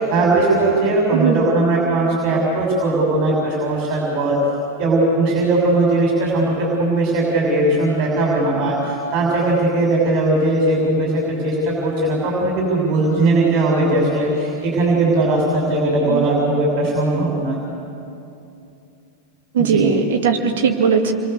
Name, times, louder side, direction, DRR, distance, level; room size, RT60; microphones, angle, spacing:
voice 1, 0.0-4.4 4.8-17.6 19.6-19.8, right 2 dB, 40° right, -3 dB, 6.4 m, -19 dB
voice 2, 1.1-1.4 16.1-16.3 19.5-21.1, right 6 dB, 60° right, 3 dB, 2.2 m, -18 dB
29.0 x 23.5 x 6.9 m, 2.7 s
figure-of-eight pair, 90°, 0 cm